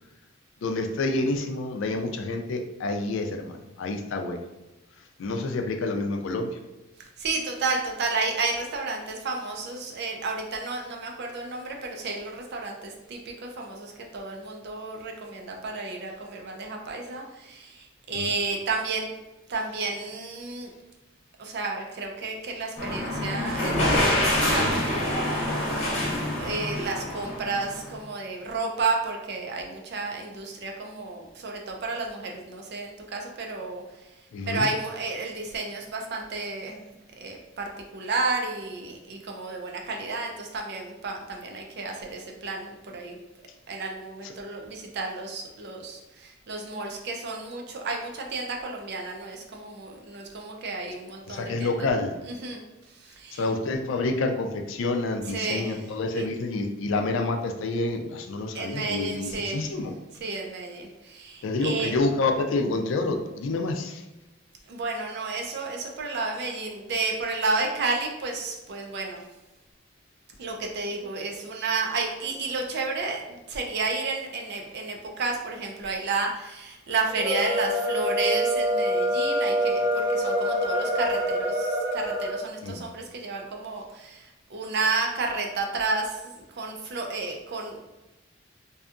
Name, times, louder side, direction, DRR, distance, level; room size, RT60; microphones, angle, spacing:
voice 1, 0.6-4.4 5.2-6.5 18.1-18.3 34.3-34.7 44.2-44.3 51.3-52.1 53.3-59.9 61.4-64.0 82.6-82.9, left 2 dB, 70° left, 5 dB, 0.3 m, -28 dB
voice 2, 7.2-19.1 19.5-20.7 21.4-25.8 26.4-34.1 34.5-43.2 43.7-51.9 52.3-53.4 55.3-55.8 56.1-56.3 58.5-59.8 60.2-61.9 64.7-69.2 70.4-87.8, right 3 dB, 55° right, 1 dB, 0.5 m, -32 dB
sound 1, 22.8-28.0, left 1 dB, 35° left, 0.8 m, -26 dB
sound 2, 77.1-82.4, equal, 15° right, 0.9 m, -25 dB
2.6 x 2.3 x 2.4 m, 1.1 s
head